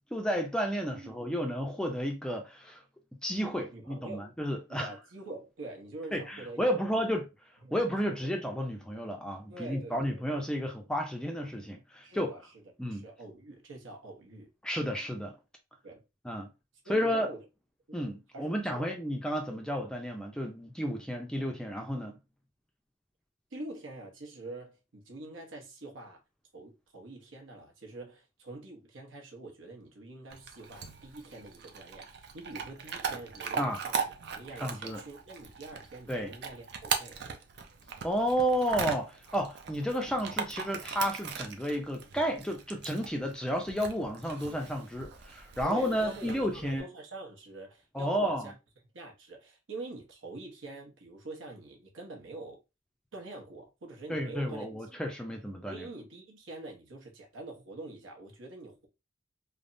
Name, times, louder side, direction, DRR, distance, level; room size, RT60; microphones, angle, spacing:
voice 1, 0.0-2.8 3.2-4.9 6.1-7.3 7.7-12.3 12.8-13.0 14.6-15.3 16.2-16.5 16.9-17.3 17.9-22.2 33.6-33.8 34.6-35.0 36.1-36.3 38.0-46.8 47.9-48.5 54.1-55.9, equal, 5° left, 0.4 m, -32 dB
voice 2, 0.9-1.4 3.7-4.3 4.7-7.1 7.6-8.3 9.5-10.7 12.0-12.5 12.8-14.5 15.8-16.0 16.8-17.4 17.9-18.0 18.3-19.0 19.5-19.6 23.5-26.2 26.5-37.2 45.6-48.5 48.9-52.6 53.1-54.7 55.7-58.9, right 2 dB, 70° right, 0.9 m, -45 dB
Chewing mastication / Dog, 30.3-46.8, right 6 dB, 55° right, 0.4 m, -39 dB
3.3 x 2.0 x 2.5 m
head